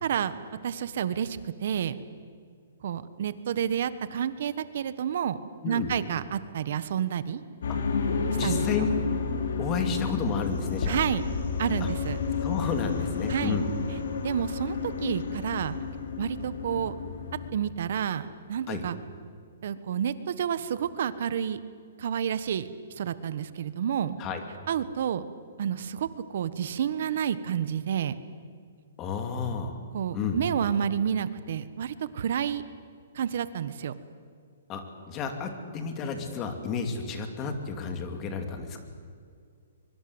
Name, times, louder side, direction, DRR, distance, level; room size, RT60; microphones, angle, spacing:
voice 1, 0.0-0.3 0.6-2.0 2.8-5.4 5.7-7.4 8.4-8.6 10.8-11.2 11.6-12.2 13.3-13.6 14.2-15.7 16.2-16.9 17.5-19.0 19.6-21.6 22.0-22.7 23.0-24.2 24.7-25.2 25.6-28.1 29.9-32.6 33.1-33.9, right 8 dB, 55° right, 14 dB, 1.4 m, -29 dB
sound 1, 7.6-17.5, left 5 dB, 65° left, 3.7 m, -31 dB
voice 2, 8.3-8.9 9.6-11.0 11.8-11.9 12.4-13.7 18.7-18.8 24.2-24.4 29.0-29.8 30.1-30.4 34.7-38.8, left 5 dB, 20° left, 6 dB, 2.6 m, -31 dB
24.0 x 23.5 x 8.1 m, 2.2 s
hypercardioid pair, 165°, 0 cm